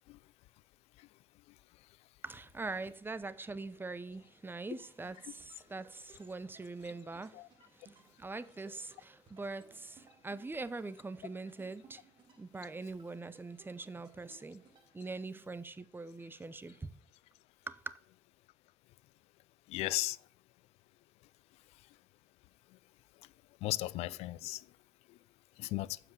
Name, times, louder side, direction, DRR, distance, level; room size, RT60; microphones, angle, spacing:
voice 1, 2.2-7.4 7.7-7.8 8.2-12.0 12.4-14.6 14.9-16.8 17.7-17.9, right 3 dB, 20° right, 0.8 m, -43 dB
sound 1, 4.6-15.5, right 5 dB, 45° right, 1.9 m, -64 dB
voice 2, 19.7-20.2 23.6-24.6 25.6-26.0, left 17 dB, 70° left, 0.4 m, -35 dB
7.3 x 5.9 x 7.7 m
hypercardioid pair, 60°, 11 cm